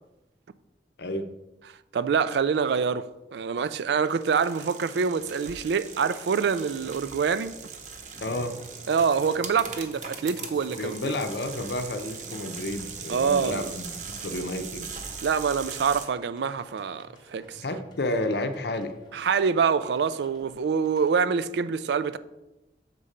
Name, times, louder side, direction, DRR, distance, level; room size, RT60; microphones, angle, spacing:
voice 1, 1.9-3.1 3.3-7.6 8.9-11.1 13.1-13.7 15.2-17.6 19.1-22.2, right 6 dB, 70° right, 0.3 m, -25 dB
sound 1, 4.1-16.1, right 6 dB, 45° right, 0.8 m, -40 dB
sound 2, 8.1-21.1, left 1 dB, 25° left, 0.9 m, -51 dB
voice 2, 8.2-8.5 10.8-14.9 17.6-18.9, left 1 dB, 65° left, 0.7 m, -31 dB
6.8 x 4.2 x 5.0 m
head